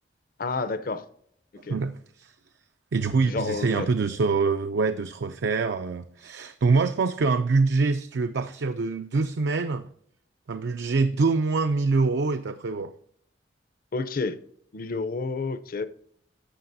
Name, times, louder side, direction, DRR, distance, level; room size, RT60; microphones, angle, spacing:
voice 1, 0.4-1.0 1.6-1.8 3.2-3.9 13.9-14.4 14.7-15.9, left 4 dB, 50° left, 0.6 m, -30 dB
voice 2, 1.6-2.3 2.9-9.9 10.5-12.9, right 4 dB, 70° right, 0.4 m, -25 dB
11.5 x 7.4 x 2.6 m
head